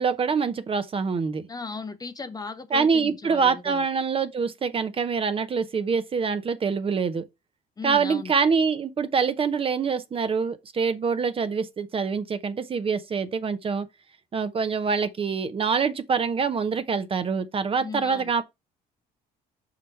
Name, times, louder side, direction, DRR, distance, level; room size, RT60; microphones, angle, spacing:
voice 1, 0.0-1.5 2.7-7.3 7.8-13.9 14.3-18.4, right 5 dB, 35° right, 0.7 m, -25 dB
voice 2, 1.5-3.9 7.8-8.3 17.8-18.3, left 4 dB, 20° left, 0.7 m, -37 dB
5.5 x 5.0 x 4.5 m
cardioid pair, 110°, 17 cm